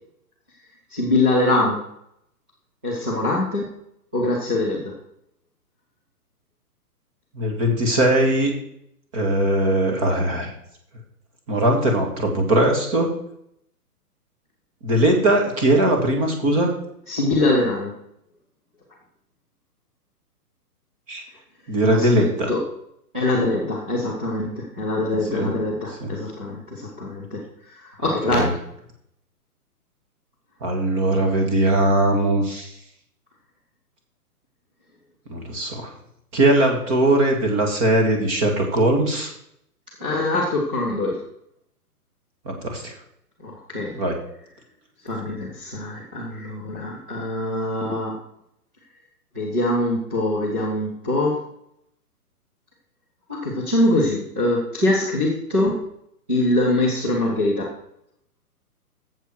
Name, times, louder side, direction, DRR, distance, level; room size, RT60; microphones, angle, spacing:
voice 1, 0.9-1.8 2.8-3.7 4.1-4.9 17.1-18.0 21.9-22.6 23.1-28.5 40.0-41.2 43.4-43.9 45.0-48.2 49.3-51.4 53.3-55.8 56.3-57.7, left 2 dB, 5° right, -8 dB, 0.6 m, -23 dB
voice 2, 7.3-8.5 9.1-10.5 11.5-13.1 14.8-16.7 21.1-21.2 21.7-22.5 25.3-25.5 26.0-26.1 28.3-28.5 30.6-32.7 35.3-35.9 36.3-39.3 42.5-42.9 44.0-44.2 57.1-57.2, right 1 dB, 20° right, 2 dB, 2.0 m, -20 dB
12.5 x 8.0 x 4.6 m, 0.74 s
hypercardioid pair, 165°, 46 cm